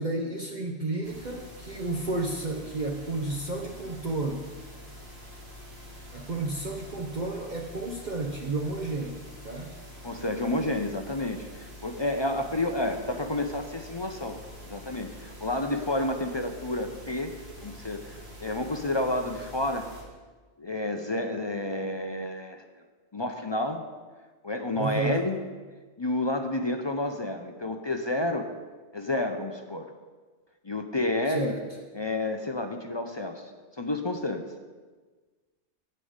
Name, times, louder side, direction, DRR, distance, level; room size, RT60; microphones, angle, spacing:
voice 1, 0.0-4.5 6.1-9.7 24.7-25.3 31.3-31.6, right 2 dB, 45° right, 1 dB, 0.8 m, -32 dB
sound 1, 1.0-20.0, left 1 dB, 65° right, 2.4 m, -46 dB
voice 2, 10.0-14.4 14.6-17.3 17.6-19.9 20.6-22.6 23.1-23.8 24.4-25.4 26.0-28.5 28.9-29.9 30.6-31.6 31.9-33.5 33.8-34.4, left 1 dB, 30° left, 5 dB, 0.5 m, -30 dB
9.8 x 5.5 x 8.0 m, 1.4 s
omnidirectional pair, 1.2 m